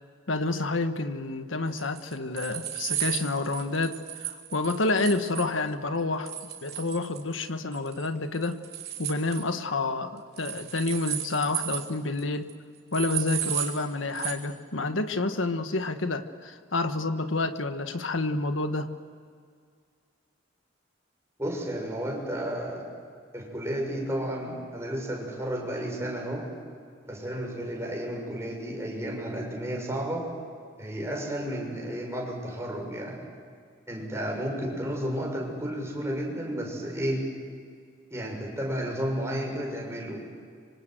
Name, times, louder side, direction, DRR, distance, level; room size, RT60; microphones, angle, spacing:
voice 1, 0.3-6.3 6.6-8.6 9.0-12.5 12.9-18.9, left 2 dB, 80° left, 8 dB, 1.5 m, -29 dB
sound 1, 1.8-5.5 6.3-7.4 7.7-8.1 8.3-9.4 10.4-11.9 12.2-12.3 12.5-12.6 12.9-13.8 14.1-14.3, right 11 dB, 55° right, 3.5 m, -34 dB
voice 2, 21.4-22.8 23.3-26.4 27.0-30.2 30.8-33.2 33.9-37.2 38.1-40.2, equal, 15° right, -1 dB, 6.6 m, -32 dB
25.5 x 25.0 x 7.9 m, 2.1 s
head